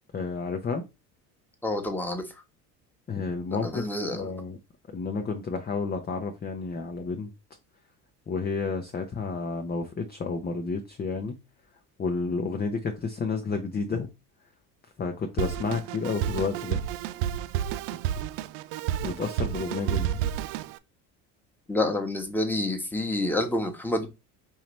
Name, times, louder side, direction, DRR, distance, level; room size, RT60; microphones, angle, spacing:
voice 1, 0.1-0.8 3.1-4.6 4.9-7.3 8.3-11.4 12.0-14.1 15.0-16.8 19.0-20.2, left 4 dB, 20° left, 0.7 m, -31 dB
voice 2, 1.6-2.2 3.6-4.3 21.7-24.1, left 1 dB, 5° left, 1.2 m, -28 dB
Drum kit, 15.4-20.8, right 10 dB, 65° right, 0.5 m, -30 dB
5.6 x 2.9 x 3.2 m
hypercardioid pair, 80°, 45 cm